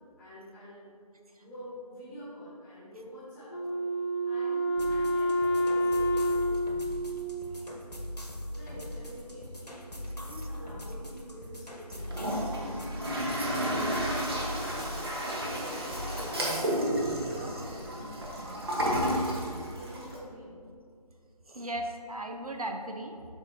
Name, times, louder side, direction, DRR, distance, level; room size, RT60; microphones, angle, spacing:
voice 1, 0.2-0.9 1.4-3.7 4.2-6.7 8.5-12.7 13.4-16.5 17.1-18.5 19.7-20.5, equal, 5° left, -11 dB, 1.4 m, -47 dB
Wind instrument woodwind instrument, 3.5-8.0, equal, 40° left, 0.6 m, -29 dB
sound 1, 4.8-16.2, left 1 dB, 85° left, 1.4 m, -41 dB
Toilet flush, 12.0-20.2, equal, 40° right, 1.3 m, -32 dB
voice 2, 13.1-13.5 21.5-23.3, right 1 dB, 65° right, 4 dB, 0.8 m, -37 dB
13.0 x 4.5 x 2.8 m, 2.3 s
figure-of-eight pair, 160°, 20 cm